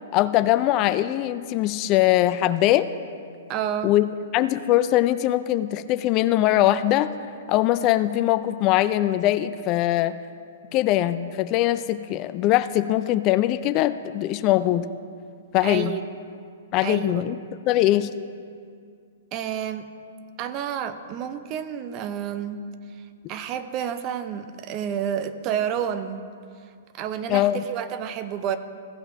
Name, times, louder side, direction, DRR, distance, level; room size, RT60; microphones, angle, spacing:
voice 1, 0.1-2.9 3.8-4.1 4.3-7.1 7.5-10.2 10.7-14.9 15.5-15.9 16.7-17.4 17.7-18.1 27.3-27.6, left 14 dB, 35° left, 13 dB, 0.3 m, -21 dB
voice 2, 3.5-3.9 15.6-16.0 16.8-17.2 19.3-19.8 20.4-22.6 23.3-26.2 26.9-28.6, right 9 dB, 35° right, 11 dB, 0.6 m, -29 dB
15.5 x 5.8 x 4.6 m, 2.3 s
hypercardioid pair, 120°, 0 cm